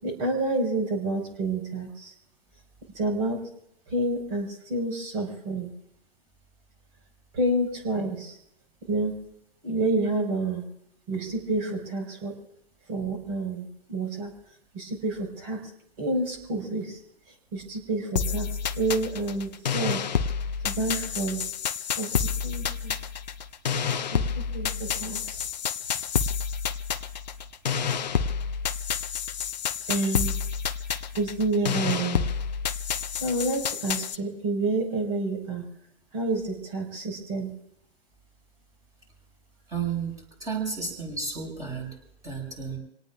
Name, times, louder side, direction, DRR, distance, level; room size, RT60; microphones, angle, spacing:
voice 1, 0.0-2.1 2.9-3.4 3.9-5.7 7.3-8.4 8.9-9.1 9.6-10.6 11.1-12.3 12.9-14.3 14.7-15.6 16.0-17.0 17.5-18.5 18.7-20.0 20.6-21.4 22.0-22.9 24.1-24.2 24.5-25.4 29.9-30.3 31.1-32.2 33.1-35.6 36.1-37.5, right 2 dB, 25° right, 3 dB, 5.1 m, -29 dB
sound 1, 18.2-34.2, left 7 dB, 40° left, 0.9 m, -29 dB
voice 2, 39.7-40.1 40.4-41.9 42.2-42.8, right 5 dB, 10° right, 0 dB, 6.0 m, -32 dB
28.0 x 18.5 x 2.5 m, 0.76 s
figure-of-eight pair, 145°, 32 cm